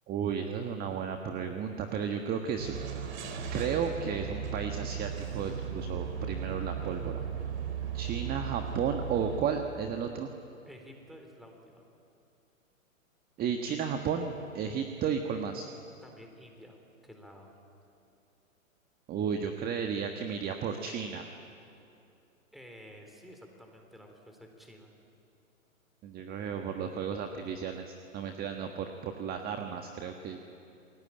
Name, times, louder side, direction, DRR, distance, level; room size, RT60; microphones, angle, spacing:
voice 1, 0.1-3.1 3.5-7.2 7.9-10.3 13.4-15.7 19.1-21.2 26.0-30.4, right 7 dB, 20° right, 5 dB, 1.5 m, -33 dB
sound 1, 2.6-9.4, right 7 dB, 55° right, 4.1 m, -36 dB
voice 2, 10.7-11.8 16.0-16.8 17.0-17.5 22.5-24.9, equal, ahead, 2 dB, 4.0 m, -51 dB
28.5 x 21.5 x 8.9 m, 2.7 s
figure-of-eight pair, 115°, 41 cm